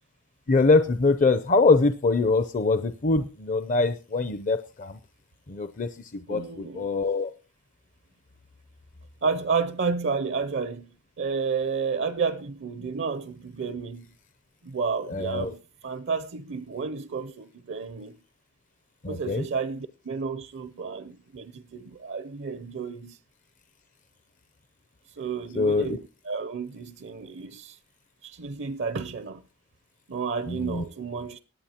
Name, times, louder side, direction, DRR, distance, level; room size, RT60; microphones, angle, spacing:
voice 1, 0.5-5.0 5.5-7.3 15.1-15.5 19.0-19.5 25.5-26.0 30.5-30.8, left 3 dB, 40° left, 0.5 m, -23 dB
voice 2, 6.3-6.8 9.2-14.1 14.6-18.2 19.1-23.2 25.2-27.8 28.2-29.4 30.1-31.4, right 5 dB, 60° right, 0.6 m, -31 dB
22.5 x 8.5 x 2.8 m
head